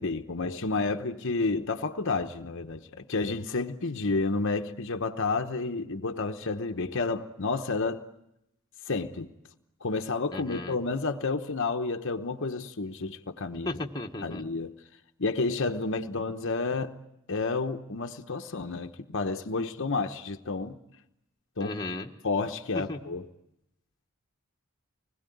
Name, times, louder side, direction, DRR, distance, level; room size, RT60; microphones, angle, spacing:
voice 1, 0.0-8.0 8.9-9.3 9.8-13.8 14.2-14.7 15.2-16.9 17.3-20.8 21.6-21.8 22.2-23.3, left 3 dB, 60° left, 1.0 m, -30 dB
voice 2, 10.3-10.8 13.6-14.4 21.6-22.1 22.9-23.0, left 2 dB, 20° left, 1.4 m, -35 dB
25.5 x 21.0 x 9.3 m
head